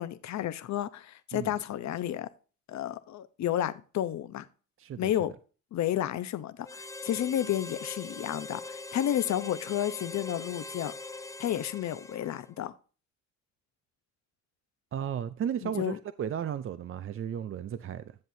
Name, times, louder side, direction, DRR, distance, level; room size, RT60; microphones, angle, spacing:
voice 1, 0.0-2.3 2.7-4.5 5.0-5.3 5.7-10.9 11.4-12.7 15.6-16.0, left 11 dB, 65° left, 0.9 m, -31 dB
voice 2, 4.8-5.1 14.9-18.1, right 9 dB, 45° right, 0.6 m, -34 dB
Harmonica, 6.6-12.6, left 2 dB, 10° left, 0.5 m, -42 dB
11.0 x 7.5 x 2.8 m
cardioid pair, 90°, 30 cm